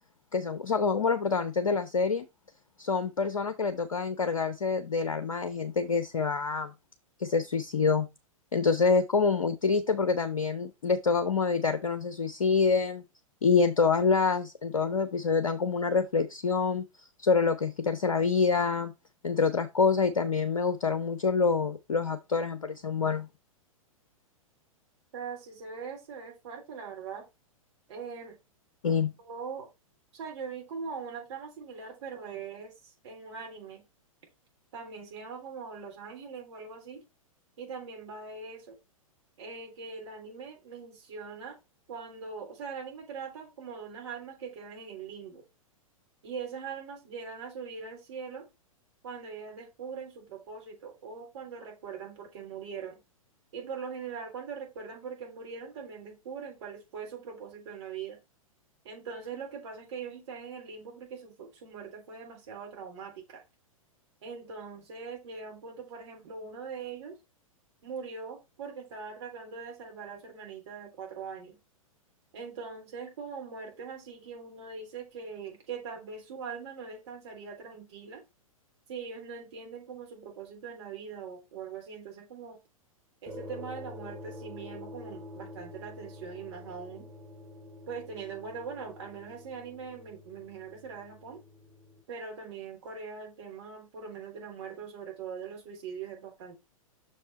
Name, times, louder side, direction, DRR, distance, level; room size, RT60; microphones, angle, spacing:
voice 1, 0.3-2.3 2.8-6.7 7.2-8.1 8.5-13.0 13.4-16.8 17.2-18.9 19.2-23.3 28.8-29.1, left 5 dB, 70° left, 0.8 m, -26 dB
voice 2, 25.1-27.2 27.9-28.4 29.2-29.7 30.1-33.8 34.7-37.0 37.6-38.8 39.4-41.6 41.9-45.4 46.2-48.5 49.0-53.0 53.5-58.2 58.8-63.4 64.2-67.2 67.8-71.6 72.3-78.2 78.9-82.6 83.2-87.1 87.9-91.4 92.1-96.6, right 5 dB, 50° right, 3.5 m, -41 dB
sound 1, 83.3-92.0, left 1 dB, 15° right, 3.3 m, -47 dB
6.3 x 5.5 x 4.2 m
figure-of-eight pair, 105°, 18 cm